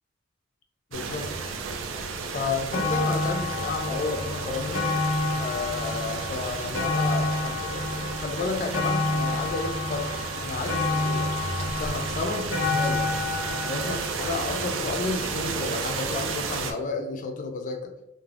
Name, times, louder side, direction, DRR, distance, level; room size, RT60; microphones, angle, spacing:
voice 1, 0.9-1.3 2.3-4.9 5.4-11.3 11.6-13.1 13.6-17.9, left 3 dB, 40° left, 4 dB, 0.4 m, -32 dB
sound 1, 0.9-16.7, right 4 dB, 75° right, 0.4 m, -33 dB
sound 2, 2.0-2.1 2.4-15.6 16.4-16.5, left 3 dB, 85° left, 0.6 m, -30 dB
2.4 x 2.0 x 3.2 m, 0.91 s
head